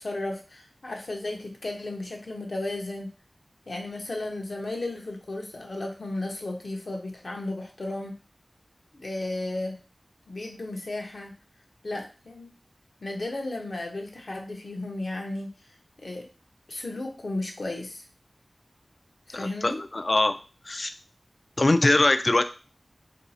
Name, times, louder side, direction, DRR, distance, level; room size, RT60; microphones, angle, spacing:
voice 1, 0.0-3.1 3.7-8.2 8.9-9.8 10.3-11.3 11.8-12.5 13.0-15.6 16.0-16.3 16.7-18.0 19.3-19.8, left 2 dB, 70° left, 1 dB, 0.8 m, -34 dB
voice 2, 19.3-20.3 20.6-20.9 21.6-22.4, left 2 dB, 50° left, 9 dB, 0.3 m, -22 dB
2.7 x 2.4 x 4.0 m, 0.35 s
wide cardioid pair, 65°, 0 cm